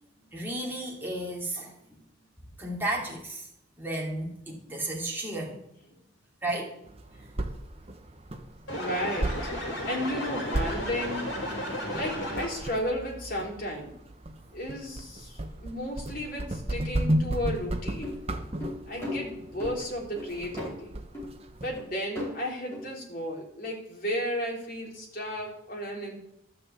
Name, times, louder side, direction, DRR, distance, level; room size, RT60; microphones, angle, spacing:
voice 1, 0.3-1.7 2.6-3.5 3.8-5.6 6.4-6.8 7.2-7.3 22.7-22.8, right 1 dB, 10° right, -2 dB, 2.8 m, -33 dB
sound 1, 6.8-21.8, right 1 dB, 30° right, 1.0 m, -35 dB
sound 2, 8.7-12.8, equal, 65° left, 4.1 m, -34 dB
voice 2, 8.7-9.3 9.8-11.2 11.9-13.9 14.5-18.1 18.9-20.9 21.6-26.2, equal, 45° left, -1 dB, 3.3 m, -34 dB
sound 3, 18.0-19.8 20.2-20.8 21.1-21.4 21.8-21.9 22.1-22.3 22.7-22.8, left 2 dB, 15° left, 4.8 m, -36 dB
12.0 x 6.6 x 8.3 m, 0.77 s
head